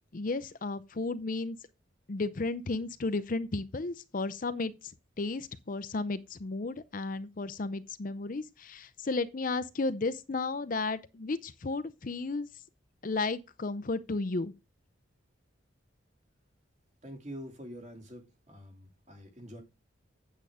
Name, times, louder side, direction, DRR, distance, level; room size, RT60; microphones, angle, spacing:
voice 1, 0.1-1.6 2.1-4.7 5.2-12.5 13.0-14.5, left 3 dB, 45° left, 0.6 m, -33 dB
voice 2, 17.0-19.6, equal, 35° right, 2.8 m, -46 dB
8.4 x 8.1 x 3.6 m
head